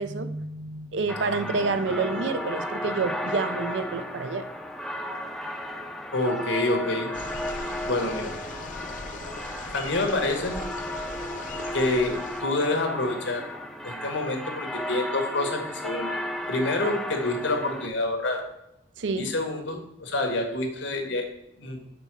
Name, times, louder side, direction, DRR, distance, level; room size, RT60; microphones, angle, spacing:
voice 1, 0.0-4.5 19.0-19.3, right 4 dB, 75° right, 11 dB, 0.5 m, -28 dB
sound 1, 1.1-17.9, equal, ahead, 0.5 m, -34 dB
voice 2, 6.1-7.1 7.9-8.3 9.7-10.5 11.7-13.5 13.8-16.2 16.5-18.5 19.2-21.3 21.6-21.8, left 2 dB, 90° left, 3 dB, 1.4 m, -27 dB
sound 2, 7.1-12.4, left 3 dB, 45° left, 0.7 m, -39 dB
6.1 x 4.0 x 6.0 m, 0.85 s
head